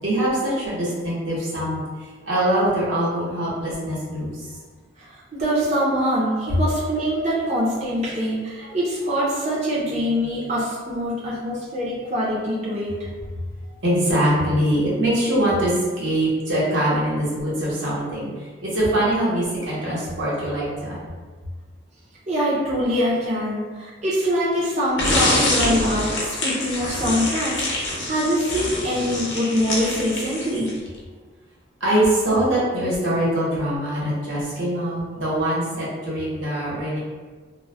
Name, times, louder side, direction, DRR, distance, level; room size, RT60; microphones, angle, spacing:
voice 1, 0.0-4.5 6.4-6.5 13.8-18.3 18.6-21.0 31.8-37.0, right 1 dB, 85° right, -7 dB, 1.0 m, -23 dB
voice 2, 5.4-12.9 22.3-27.5 28.0-30.7, equal, 35° right, -7 dB, 0.5 m, -24 dB
sound 1, 25.0-30.9, left 2 dB, 70° left, 0.6 m, -25 dB
2.3 x 2.1 x 3.3 m, 1.4 s
head